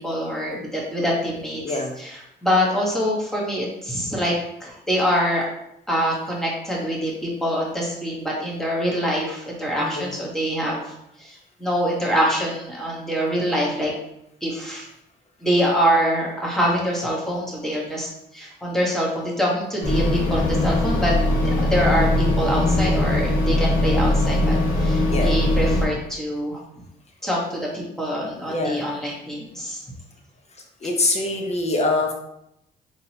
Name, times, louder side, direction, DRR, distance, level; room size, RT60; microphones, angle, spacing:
voice 1, 0.0-1.6 2.0-4.3 4.6-5.4 5.9-10.8 11.2-11.3 11.6-13.9 14.4-14.9 15.4-18.1 18.3-26.6 27.2-29.8, equal, ahead, -4 dB, 1.3 m, -24 dB
voice 2, 1.6-1.9 9.8-10.1 25.1-25.4 28.5-28.8 30.8-32.1, left 2 dB, 35° left, 2 dB, 0.8 m, -24 dB
sound 1, 19.8-25.9, left 1 dB, 75° left, 1.1 m, -20 dB
3.8 x 3.0 x 2.9 m, 0.80 s
cardioid pair, 90°, 20 cm